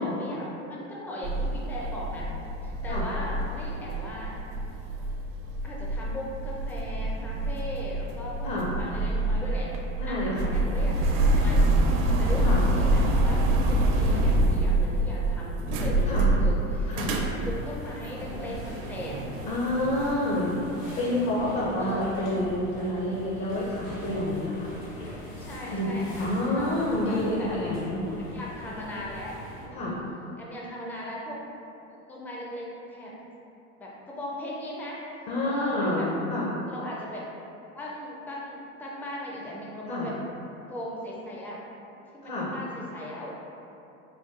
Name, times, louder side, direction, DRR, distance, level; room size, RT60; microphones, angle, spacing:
voice 1, 0.0-2.3 2.6-4.3 5.6-9.8 10.1-11.6 12.0-19.2 21.8-22.1 25.3-27.5 28.2-29.4 29.6-30.0 30.4-31.4 31.9-33.1 33.8-35.0 35.4-36.1 36.7-37.2 37.7-40.2 40.7-41.6 42.1-43.3, left 1 dB, 5° left, -5 dB, 0.4 m, -38 dB
sound 1, 1.2-20.1, right 1 dB, 55° right, 0.5 m, -26 dB
voice 2, 10.0-10.5 12.4-12.6 16.1-16.3 16.9-17.1 19.5-20.6 21.0-24.7 25.7-28.0 29.7-30.0 35.3-36.5 39.9-40.1 42.2-42.5, left 1 dB, 50° left, -6 dB, 0.7 m, -28 dB
sound 2, 17.4-29.7, equal, 90° left, 1.1 m, -41 dB
4.5 x 2.3 x 2.5 m, 2.8 s
hypercardioid pair, 100°, 39 cm